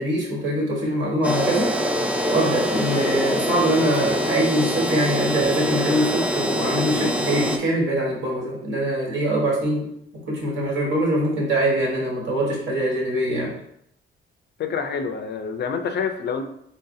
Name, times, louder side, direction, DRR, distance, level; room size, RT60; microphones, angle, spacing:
voice 1, 0.0-1.7 2.3-9.9 10.1-13.5, right 1 dB, 60° right, -3 dB, 1.5 m, -23 dB
sound 1, 1.2-7.6, equal, 5° right, 0.4 m, -24 dB
voice 2, 14.6-16.4, left 6 dB, 55° left, 7 dB, 0.4 m, -27 dB
3.9 x 3.3 x 2.7 m, 0.74 s
cardioid pair, 120°, 21 cm